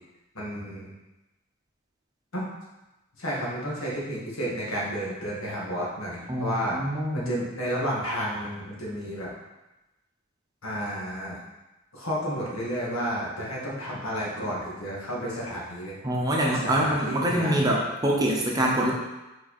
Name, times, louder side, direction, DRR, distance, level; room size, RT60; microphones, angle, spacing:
voice 1, 0.3-0.9 2.3-2.5 3.2-6.8 7.1-9.3 10.6-11.4 11.9-16.0 16.5-17.7, equal, 75° left, -5 dB, 1.9 m, -31 dB
voice 2, 6.3-7.3 16.0-18.9, right 1 dB, 20° right, -2 dB, 0.8 m, -25 dB
5.7 x 4.7 x 4.2 m, 1.0 s
head